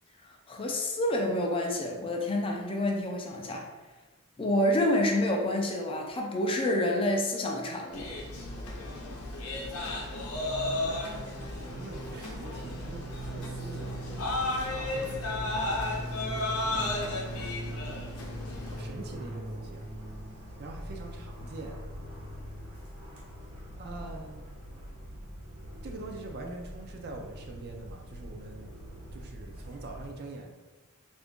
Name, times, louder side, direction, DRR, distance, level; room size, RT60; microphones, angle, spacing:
voice 1, 0.5-3.7 4.4-8.1, left 1 dB, 25° left, 1 dB, 0.4 m, -28 dB
sound 1, 7.9-18.8, left 2 dB, 90° left, 0.6 m, -34 dB
Fixed-wing aircraft airplane, 10.3-30.0, right 1 dB, 80° right, 1.1 m, -42 dB
voice 2, 11.0-17.2 18.6-19.9 20.6-21.8 23.8-24.4 25.8-28.7 29.1-30.6, right 2 dB, 50° right, 2 dB, 0.4 m, -44 dB
2.8 x 2.5 x 3.5 m, 1.2 s
head